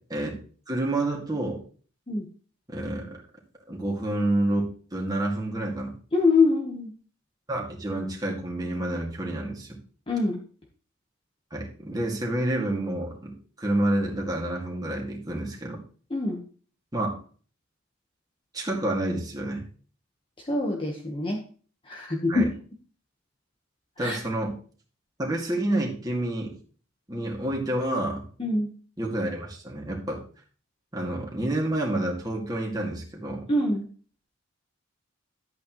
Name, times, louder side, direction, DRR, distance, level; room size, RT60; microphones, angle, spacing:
voice 1, 0.7-1.6 2.7-3.2 3.7-5.9 7.5-9.8 11.5-15.8 16.9-17.2 18.5-19.6 22.3-22.5 24.0-24.5 25.2-26.6 27.1-28.3 29.0-30.2 30.9-33.5, right 1 dB, 20° right, -2 dB, 2.1 m, -29 dB
voice 2, 6.1-6.9 10.1-10.4 16.1-16.4 20.5-21.4 21.9-22.5 24.0-24.2 28.4-28.7 33.5-33.8, left 3 dB, 25° left, 0 dB, 1.2 m, -24 dB
11.5 x 8.3 x 3.1 m, 0.42 s
head